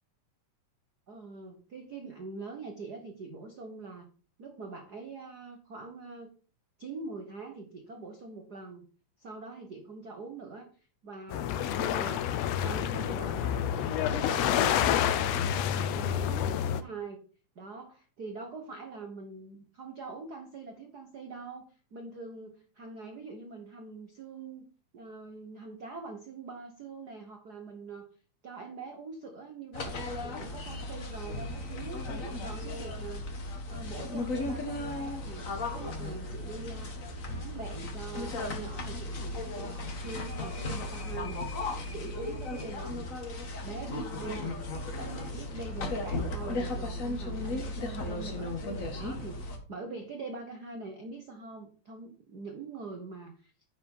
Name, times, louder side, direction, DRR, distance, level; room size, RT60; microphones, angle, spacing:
voice 1, 1.1-4.1 4.4-6.3 6.8-8.8 9.2-10.7 11.0-17.2 17.5-24.7 24.9-28.1 28.4-32.0 32.4-33.3 33.7-36.9 37.3-39.8 40.0-43.2 43.6-44.5 45.0-48.6 48.9-53.5, right 4 dB, 90° right, 4 dB, 0.8 m, -43 dB
sound 1, 11.3-16.8, left 10 dB, 90° left, 1.4 m, -28 dB
sound 2, 29.7-49.6, left 2 dB, 65° left, 0.8 m, -36 dB
10.5 x 4.7 x 5.5 m, 0.38 s
omnidirectional pair, 3.8 m